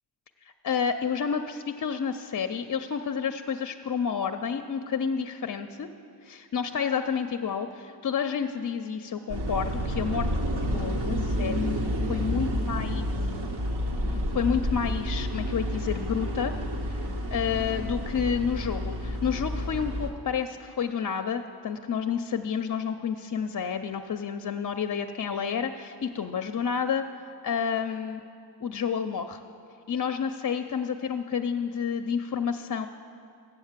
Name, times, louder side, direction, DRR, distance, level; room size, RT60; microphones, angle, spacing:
voice 1, 0.4-5.9 6.2-10.3 10.7-11.7 12.1-13.1 14.1-16.5 16.9-17.0 17.3-28.2 28.6-29.4 29.9-32.9, left 7 dB, 50° left, 7 dB, 0.4 m, -30 dB
sound 1, 9.3-20.1, equal, 75° right, 1.0 m, -30 dB
8.0 x 7.2 x 7.3 m, 2.4 s
cardioid pair, 50°, 40 cm